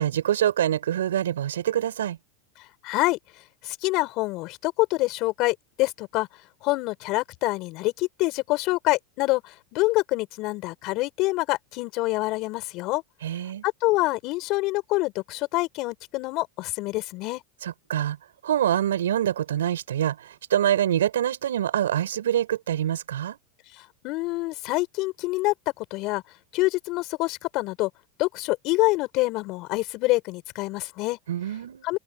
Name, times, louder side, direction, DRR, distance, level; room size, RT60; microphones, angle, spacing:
voice 1, 0.0-2.2 13.2-13.6 17.6-18.2 18.4-23.4 31.3-31.9, right 11 dB, 90° right, 8.0 m, -25 dB
voice 2, 2.8-3.2 3.6-6.3 6.6-13.0 13.6-17.4 24.0-26.2 26.5-27.9 28.2-31.2 31.8-32.0, left 21 dB, 50° left, 5.9 m, -26 dB
supercardioid pair, 120°, 0 cm